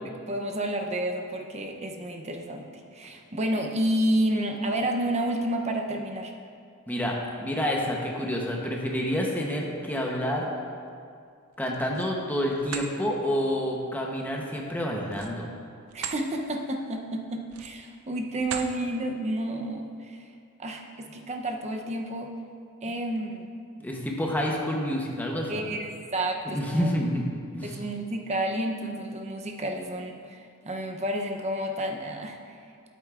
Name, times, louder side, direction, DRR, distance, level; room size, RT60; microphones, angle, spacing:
voice 1, 0.3-2.7 2.9-6.3 15.9-20.2 20.6-22.3 22.8-23.5 25.5-26.9 27.6-32.4, right 1 dB, 30° right, 3 dB, 0.7 m, -30 dB
voice 2, 6.9-10.5 11.6-15.5 23.8-25.6 26.4-27.3 27.5-27.8, equal, 10° left, -1 dB, 0.9 m, -28 dB
sound 1, 11.5-12.2 12.6-12.9 15.1-16.2 16.7-16.9 17.4-17.9 18.4-18.8, right 7 dB, 80° right, 0.6 m, -38 dB
12.5 x 8.2 x 2.5 m, 2.3 s
head